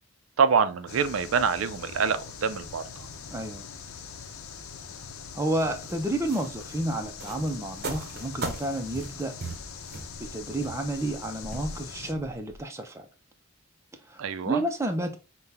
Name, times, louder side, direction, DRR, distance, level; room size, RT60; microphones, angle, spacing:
voice 1, 0.4-2.8 14.2-14.6, right 6 dB, 75° right, 0.4 m, -25 dB
sound 1, 0.9-12.1, left 6 dB, 90° left, 0.7 m, -42 dB
voice 2, 3.3-3.7 5.3-9.3 10.2-13.1 14.1-14.2 14.5-15.2, right 1 dB, 15° right, 0.5 m, -30 dB
sound 2, 5.6-12.6, right 3 dB, 45° right, 0.7 m, -39 dB
5.6 x 2.2 x 3.3 m
head